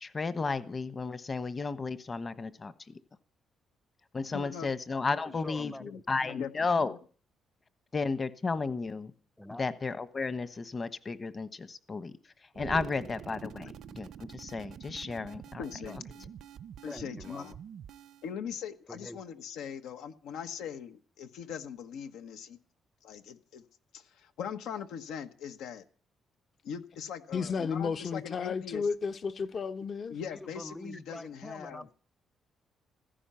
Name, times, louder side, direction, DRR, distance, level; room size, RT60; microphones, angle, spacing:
voice 1, 0.0-3.0 4.1-5.7 6.1-6.9 7.9-9.1 9.6-12.1 12.5-15.6, left 4 dB, 35° left, 1.2 m, -33 dB
voice 2, 4.3-4.7 5.6-6.0 6.3-6.5 6.8-7.0 15.6-16.3 16.8-17.5 18.2-22.6 23.0-23.6 23.9-25.8 26.6-28.9 30.1-31.9, left 7 dB, 90° left, 1.3 m, -41 dB
voice 3, 5.1-6.3 9.4-9.7 15.8-16.0 16.9-17.6 18.9-19.2 30.3-32.0, left 1 dB, 10° left, 0.7 m, -45 dB
sound 1, 12.5-18.3, right 9 dB, 65° right, 0.7 m, -46 dB
voice 4, 27.3-30.2, left 5 dB, 50° left, 0.9 m, -32 dB
15.5 x 14.0 x 5.7 m
cardioid pair, 90°, 0 cm